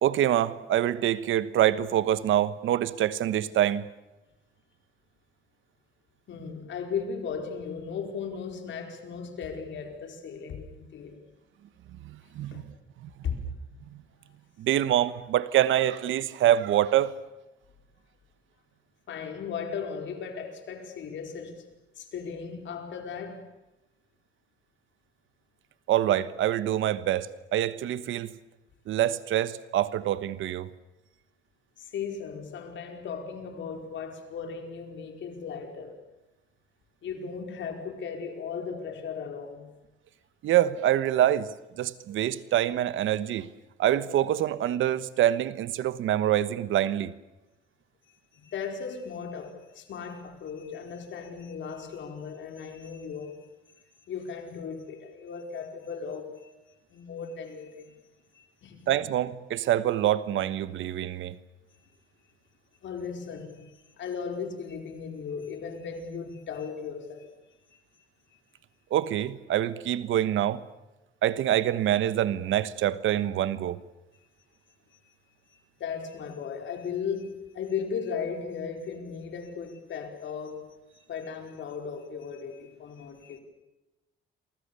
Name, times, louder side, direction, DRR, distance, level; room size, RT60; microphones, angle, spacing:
voice 1, 0.0-3.8 12.0-12.6 13.0-13.1 14.6-17.1 25.9-28.3 28.9-30.7 40.4-41.5 41.8-43.5 43.8-47.1 58.9-61.3 68.9-70.6 71.2-73.8, right 12 dB, 80° right, 1.2 m, -25 dB
voice 2, 6.3-11.2 12.5-12.7 13.2-13.6 19.1-21.6 22.0-23.5 31.8-36.0 37.0-39.7 48.3-53.4 54.1-56.5 56.9-58.0 58.3-58.9 62.8-67.3 67.7-67.8 75.8-80.7 81.1-83.4, left 6 dB, 70° left, 5.0 m, -36 dB
29.0 x 24.0 x 7.0 m
cardioid pair, 90°, 20 cm